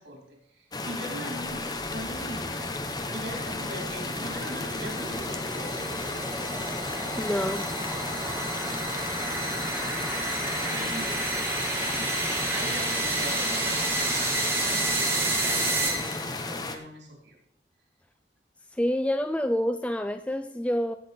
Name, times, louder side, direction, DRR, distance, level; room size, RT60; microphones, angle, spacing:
voice 1, 0.0-2.7 3.1-5.9 10.7-11.3 12.5-17.4, right 1 dB, 85° right, 0 dB, 3.5 m, -41 dB
sound 1, 0.7-16.8, left 2 dB, 25° left, 0.8 m, -34 dB
sound 2, 1.8-16.4, right 2 dB, 15° right, 1.5 m, -31 dB
sound 3, 5.1-13.1, equal, 75° left, 2.8 m, -49 dB
voice 2, 7.2-7.7 18.7-20.9, equal, 5° left, 9 dB, 0.3 m, -27 dB
16.0 x 5.9 x 4.3 m, 0.71 s
head